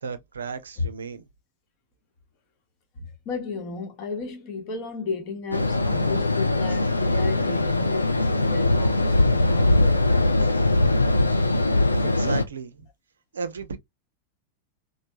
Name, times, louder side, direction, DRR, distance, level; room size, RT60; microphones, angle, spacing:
voice 1, 0.0-1.2 12.0-12.9 13.3-13.8, right 5 dB, 70° right, 0.5 m, -35 dB
voice 2, 2.9-10.5, left 4 dB, 40° left, 1.0 m, -34 dB
sound 1, 5.5-12.4, left 2 dB, 85° left, 0.4 m, -21 dB
3.2 x 2.1 x 2.7 m
figure-of-eight pair, 90°, 0 cm